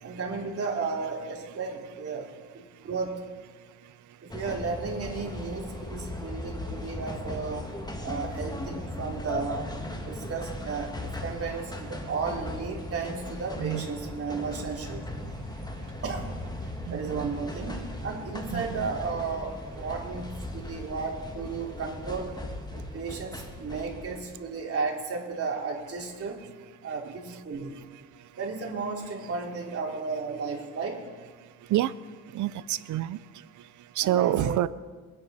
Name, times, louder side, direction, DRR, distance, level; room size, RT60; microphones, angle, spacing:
voice 1, 0.0-2.3 2.5-3.2 4.2-7.7 8.0-9.7 10.1-15.1 16.0-16.3 16.9-22.3 22.7-26.4 26.8-27.8 28.4-31.0 34.0-34.6, right 4 dB, 50° right, -1 dB, 3.4 m, -34 dB
sound 1, 4.3-24.2, left 1 dB, 15° left, 1.8 m, -38 dB
voice 2, 16.9-17.3 18.5-18.9 31.7-31.9 32.3-33.2 34.0-34.7, right 13 dB, 75° right, 17 dB, 0.6 m, -27 dB
24.5 x 9.9 x 4.3 m, 1.4 s
cardioid pair, 90°, 30 cm